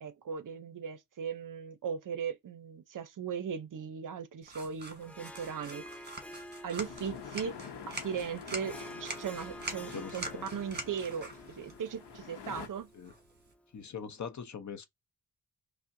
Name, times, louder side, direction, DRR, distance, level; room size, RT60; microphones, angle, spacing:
voice 1, 0.0-6.1 6.6-7.6 7.9-10.3 10.5-12.9, right 7 dB, 50° right, 0.6 m, -38 dB
sound 1, 4.4-13.5, right 3 dB, 25° right, 1.2 m, -45 dB
Harp, 5.0-13.6, equal, 5° left, 0.4 m, -50 dB
sound 2, 6.8-12.7, left 6 dB, 80° left, 0.8 m, -47 dB
voice 2, 9.9-10.4 12.9-13.1 13.7-14.9, left 7 dB, 45° left, 0.7 m, -42 dB
5.3 x 2.1 x 2.5 m
wide cardioid pair, 125°, 41 cm